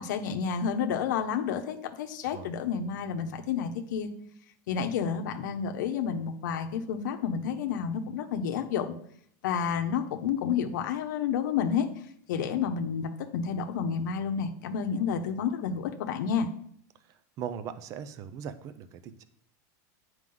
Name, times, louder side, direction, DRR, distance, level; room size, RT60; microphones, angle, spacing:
voice 1, 0.0-4.1 4.7-8.9 9.4-11.9 12.3-16.5, left 7 dB, 90° left, 5 dB, 0.8 m, -30 dB
voice 2, 17.0-19.2, right 8 dB, 35° right, 12 dB, 0.5 m, -39 dB
9.1 x 4.6 x 3.8 m, 0.64 s
supercardioid pair, 160°, 10 cm